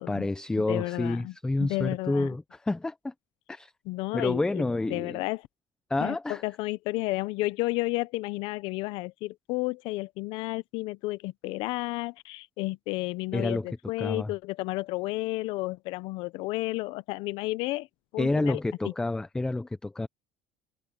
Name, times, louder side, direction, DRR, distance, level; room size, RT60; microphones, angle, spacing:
voice 1, 0.0-3.1 3.5-3.7 4.1-5.2 5.9-6.4 13.3-13.7 14.0-14.3 18.2-20.1, left 2 dB, 10° left, 0.8 m, -29 dB
voice 2, 0.6-1.3 1.6-2.3 3.9-5.5 6.0-17.9 18.1-18.6 18.8-18.9, left 20 dB, 75° left, 0.7 m, -32 dB
cardioid pair, 145°, 9 cm